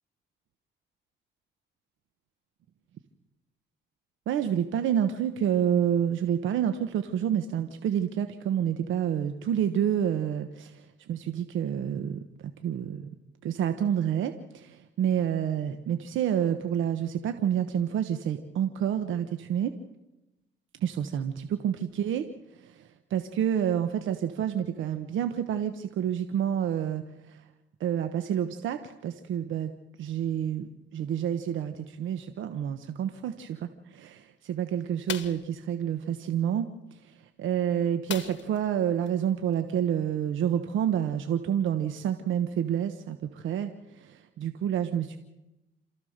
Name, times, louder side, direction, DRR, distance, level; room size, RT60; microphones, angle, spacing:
voice 1, 4.3-13.1 13.4-19.7 20.8-22.2 22.5-27.4 27.8-45.2, right 9 dB, 80° right, 8 dB, 1.1 m, -29 dB
sound 1, 35.1-35.5 38.1-38.7 39.0-39.1 39.5-39.7, left 10 dB, 65° left, 1.3 m, -37 dB
28.0 x 14.0 x 6.6 m, 0.99 s
cardioid pair, 90°, 20 cm